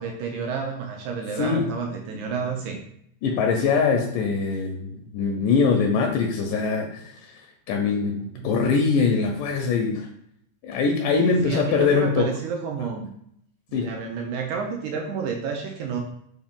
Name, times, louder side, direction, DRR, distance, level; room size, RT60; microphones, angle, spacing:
voice 1, 0.0-2.8 8.3-8.5 11.2-13.1 13.7-16.0, right 5 dB, 80° right, 1 dB, 1.8 m, -30 dB
voice 2, 3.2-7.3 7.7-10.1 10.6-12.3 13.7-13.9, left 5 dB, 85° left, 3 dB, 2.1 m, -23 dB
5.2 x 2.5 x 3.5 m, 0.71 s
omnidirectional pair, 3.7 m